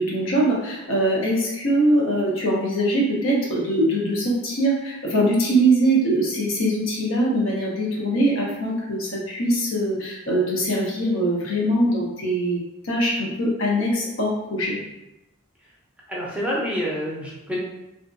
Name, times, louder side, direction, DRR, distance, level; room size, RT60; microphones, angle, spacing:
voice 1, 0.0-14.8, right 1 dB, 85° left, -3 dB, 0.7 m, -22 dB
voice 2, 16.1-17.6, equal, 5° right, -5 dB, 0.5 m, -27 dB
2.6 x 2.2 x 2.5 m, 0.94 s
head